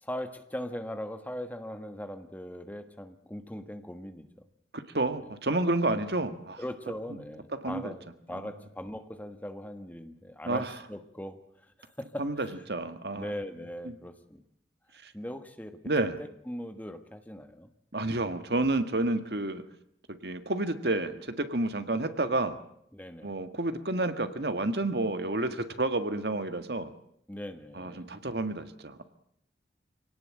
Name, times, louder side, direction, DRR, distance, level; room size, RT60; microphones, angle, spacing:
voice 1, 0.0-4.3 5.2-5.3 5.9-6.0 6.6-12.7 13.1-14.4 15.1-15.8 16.2-17.7 22.9-23.3 27.3-28.1, equal, 10° left, 8 dB, 1.5 m, -40 dB
voice 2, 4.7-6.6 7.6-7.9 10.5-10.7 12.2-13.3 15.0-15.1 15.9-16.2 17.9-19.6 20.1-22.6 23.2-26.9 27.8-29.0, right 2 dB, 60° right, 10 dB, 1.8 m, -30 dB
25.5 x 18.0 x 8.9 m, 0.72 s
head